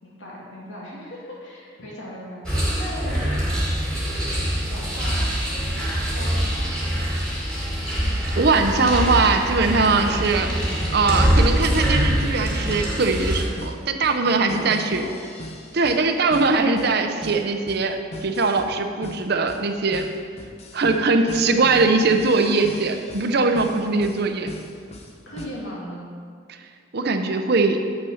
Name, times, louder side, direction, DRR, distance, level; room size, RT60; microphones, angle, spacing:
voice 1, 0.0-3.8 4.6-5.3 5.8-7.0 14.3-15.2 16.2-16.3 25.3-26.1, equal, 80° left, -5 dB, 2.5 m, -38 dB
sound 1, 2.4-13.4, equal, 5° left, 2.0 m, -24 dB
voice 2, 8.3-10.5 10.9-15.0 15.7-20.0 20.7-24.5 26.9-27.8, right 3 dB, 55° right, 6 dB, 0.6 m, -21 dB
sound 2, 10.8-25.5, equal, 35° left, 0.8 m, -40 dB
8.2 x 6.3 x 5.7 m, 2.1 s
head